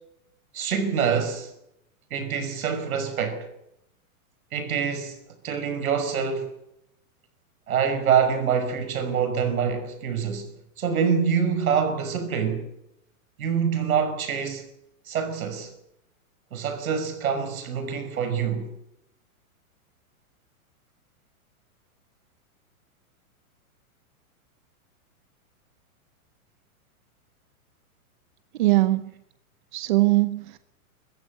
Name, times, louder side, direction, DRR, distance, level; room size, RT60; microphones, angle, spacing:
voice 1, 0.5-1.5 2.1-3.5 4.5-5.2 5.4-6.5 7.7-10.5 10.8-12.7 13.4-14.7 15.1-15.7 16.5-18.7, right 7 dB, 75° right, 5.7 m, -25 dB
voice 2, 28.6-29.1 29.7-30.6, right 19 dB, 35° right, 0.8 m, -21 dB
24.0 x 15.0 x 7.9 m
supercardioid pair, 165°, 43 cm